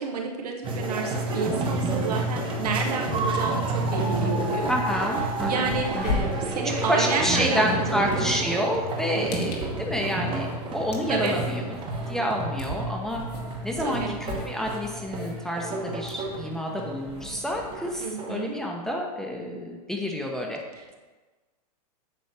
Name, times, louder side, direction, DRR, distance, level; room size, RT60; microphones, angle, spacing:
voice 1, 0.0-4.7 5.5-8.4 9.1-9.5 11.1-11.4 13.8-14.1 18.0-18.5 20.8-20.9, right 5 dB, 75° right, 2 dB, 1.3 m, -30 dB
sound 1, 0.6-18.5, right 2 dB, 25° right, 1.1 m, -30 dB
sound 2, 4.3-4.4 4.7-18.1, left 3 dB, 80° left, 1.6 m, -39 dB
voice 2, 4.7-11.8 12.1-13.2 13.6-20.6, equal, ahead, -1 dB, 0.8 m, -29 dB
8.7 x 3.1 x 5.8 m, 1.3 s
hypercardioid pair, 130°, 20 cm